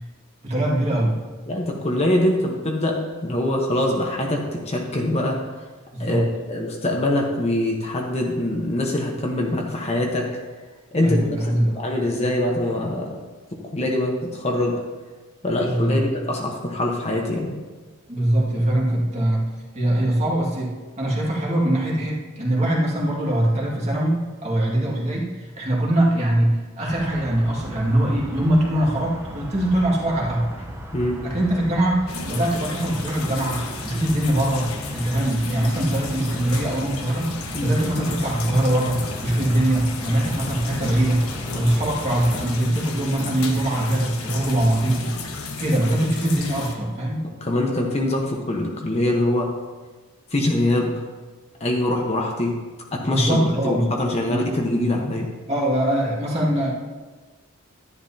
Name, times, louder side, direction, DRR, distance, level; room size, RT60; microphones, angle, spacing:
voice 1, 0.4-1.1 5.9-6.3 11.0-11.8 15.6-16.0 18.1-19.5 19.7-30.5 31.2-37.3 37.6-41.3 41.5-45.1 45.6-47.2 53.0-53.8 54.3-54.6 55.5-56.7, right 1 dB, 30° right, -4 dB, 2.1 m, -22 dB
voice 2, 1.5-5.4 6.0-10.3 10.9-11.4 11.7-13.1 13.5-14.8 15.4-17.6 30.9-31.2 37.5-37.7 47.4-49.5 50.3-51.0 51.6-52.5 52.9-55.3, left 1 dB, 30° left, 0 dB, 1.1 m, -23 dB
sound 1, 26.9-42.6, equal, 10° right, 0.9 m, -37 dB
sound 2, 32.1-46.7, left 3 dB, 80° left, 1.3 m, -33 dB
12.0 x 10.5 x 2.9 m, 1.3 s
head